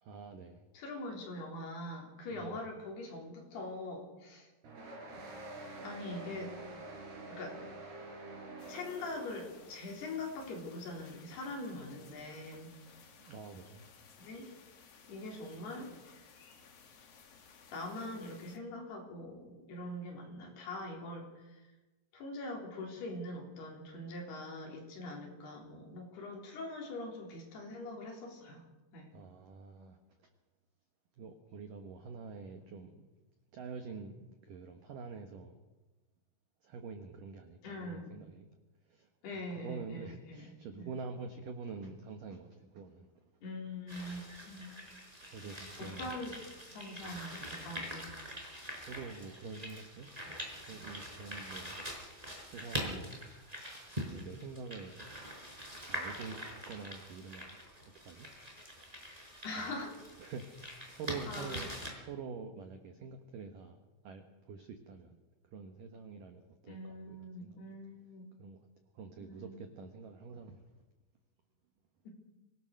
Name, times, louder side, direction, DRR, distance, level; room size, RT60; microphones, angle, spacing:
voice 1, 0.0-0.6 2.3-2.6 13.2-13.8 16.6-16.7 29.1-30.0 31.2-33.1 33.5-35.6 36.6-38.5 38.9-39.1 39.6-43.1 45.2-46.1 48.8-50.1 50.6-51.8 52.5-53.1 53.6-55.1 55.8-56.4 56.7-57.6 58.0-58.3 59.6-59.8 60.2-61.8 62.0-63.8 64.0-65.2 65.5-67.6 68.4-68.6 68.9-70.6, right 5 dB, 80° right, 6 dB, 1.9 m, -46 dB
voice 2, 0.7-4.5 5.8-6.5 7.3-7.6 8.7-12.7 14.2-14.5 15.1-15.9 17.7-21.7 22.1-28.6 28.9-29.1 37.6-38.1 39.2-40.9 43.4-44.9 45.8-46.4 46.7-48.1 59.4-60.0 61.3-61.7 66.7-68.3 69.2-69.7 72.1-72.2, left 2 dB, 55° left, 0 dB, 5.4 m, -43 dB
sound 1, 4.6-9.7, right 2 dB, 55° right, 6.1 m, -47 dB
sound 2, 8.6-18.6, left 6 dB, 75° left, 1.4 m, -58 dB
sound 3, 43.9-61.9, equal, 10° right, 4.5 m, -44 dB
25.0 x 18.5 x 6.5 m, 1.1 s
omnidirectional pair, 5.9 m